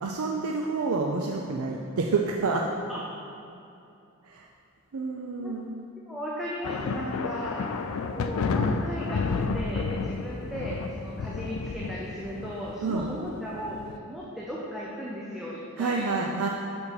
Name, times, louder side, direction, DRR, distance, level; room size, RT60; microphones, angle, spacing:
voice 1, 0.0-2.7 4.3-4.5 4.9-5.7 12.8-13.1 15.8-16.5, right 4 dB, 85° right, 1 dB, 0.5 m, -28 dB
voice 2, 6.1-7.8 8.1-13.8 14.1-16.1, equal, ahead, -6 dB, 0.6 m, -36 dB
sound 1, 6.6-14.0, left 4 dB, 75° left, 0.4 m, -31 dB
7.0 x 5.7 x 4.1 m, 2.7 s
head